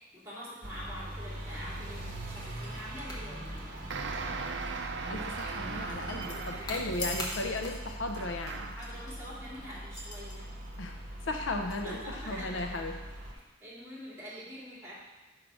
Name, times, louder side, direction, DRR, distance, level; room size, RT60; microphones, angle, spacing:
voice 1, 0.0-3.8 6.2-6.7 8.8-10.4 11.8-12.9 13.6-14.9, equal, 15° right, -7 dB, 2.6 m, -45 dB
sound 1, 0.6-13.3, right 1 dB, 45° right, 1.1 m, -42 dB
sound 2, 2.3-13.4, left 1 dB, 20° left, 1.2 m, -46 dB
sound 3, 3.9-6.9 8.1-8.9, right 4 dB, 65° right, 0.5 m, -38 dB
voice 2, 5.1-8.6 10.8-11.0 11.2-12.0 12.3-13.0, left 2 dB, 85° left, 4 dB, 0.7 m, -35 dB
6.3 x 4.8 x 6.1 m, 1.2 s
head